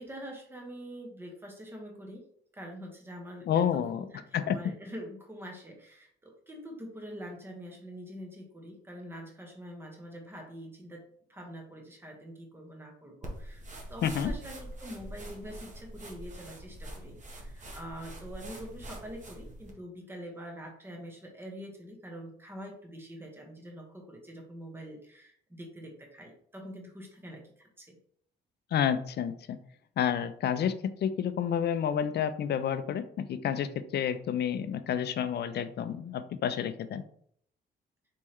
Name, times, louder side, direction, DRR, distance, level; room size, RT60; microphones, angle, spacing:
voice 1, 0.0-2.3 2.5-13.6 13.9-28.0, equal, 10° right, 1 dB, 1.1 m, -45 dB
voice 2, 3.5-4.0 4.3-4.6 14.0-14.3 28.7-29.6 30.0-30.7 31.0-37.0, left 8 dB, 55° left, 12 dB, 0.5 m, -29 dB
sound 1, 13.2-19.7, right 1 dB, 40° right, 1.2 m, -43 dB
4.3 x 3.5 x 3.1 m, 0.65 s
cardioid pair, 90°, 20 cm